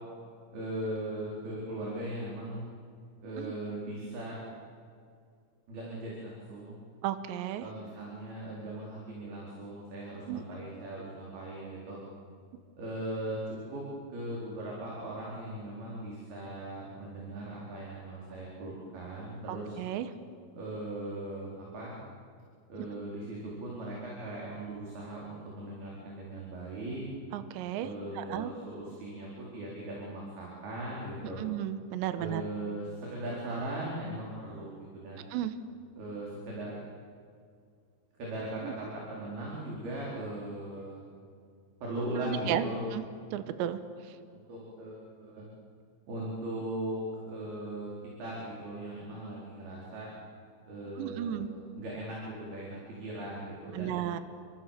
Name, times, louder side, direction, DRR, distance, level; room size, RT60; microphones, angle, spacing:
voice 1, 0.5-2.6 3.2-4.4 5.7-6.8 7.6-12.0 12.8-13.8 14.1-19.8 20.5-22.0 22.7-27.1 27.8-31.4 32.2-35.3 36.0-36.7 38.2-41.0 41.8-42.8 44.3-45.4 46.1-47.9 48.2-50.1 50.7-54.0, right 1 dB, 55° right, -4 dB, 6.1 m, -39 dB
voice 2, 7.0-7.7 10.3-10.4 19.5-20.1 27.3-28.5 31.4-32.4 35.3-35.5 38.6-38.7 42.2-42.7 42.9-43.0 43.3-44.2 51.0-51.5 53.7-54.2, right 11 dB, 75° right, 11 dB, 3.3 m, -34 dB
28.5 x 24.5 x 7.5 m, 2.2 s
omnidirectional pair, 5.3 m